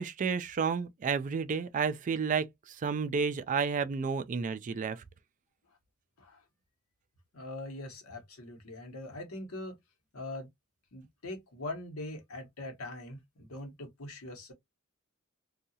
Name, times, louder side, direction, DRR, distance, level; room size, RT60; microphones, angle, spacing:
voice 1, 0.0-5.0, right 5 dB, 35° right, 0.3 m, -31 dB
voice 2, 7.3-9.8 10.1-10.5 10.9-14.5, left 2 dB, 70° left, 1.0 m, -42 dB
2.7 x 2.3 x 2.7 m
head